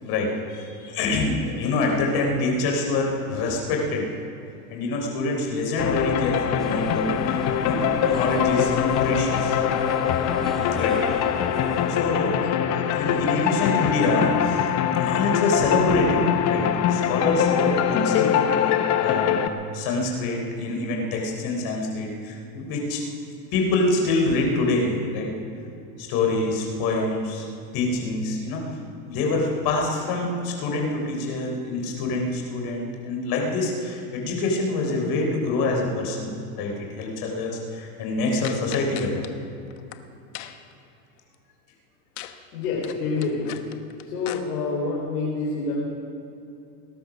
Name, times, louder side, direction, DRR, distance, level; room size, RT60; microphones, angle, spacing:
voice 1, 0.0-4.1 4.7-7.1 7.6-7.8 8.1-8.7 9.0-9.6 10.7-11.0 11.9-14.7 15.0-18.4 19.0-23.0 23.5-25.3 26.0-27.5 27.7-28.6 29.1-39.2, left 2 dB, 50° left, 1 dB, 3.9 m, -25 dB
sound 1, 5.8-19.5, left 9 dB, 35° left, 0.9 m, -23 dB
sound 2, 6.6-12.0, left 1 dB, ahead, 1.4 m, -36 dB
sound 3, 38.4-39.3 39.7-40.0 40.3-40.7 42.2-42.4 42.6-44.4, left 13 dB, 70° left, 1.1 m, -38 dB
voice 2, 42.5-43.6 44.0-45.7, left 4 dB, 85° left, -6 dB, 4.3 m, -27 dB
19.5 x 11.0 x 6.1 m, 2.6 s
supercardioid pair, 125°, 47 cm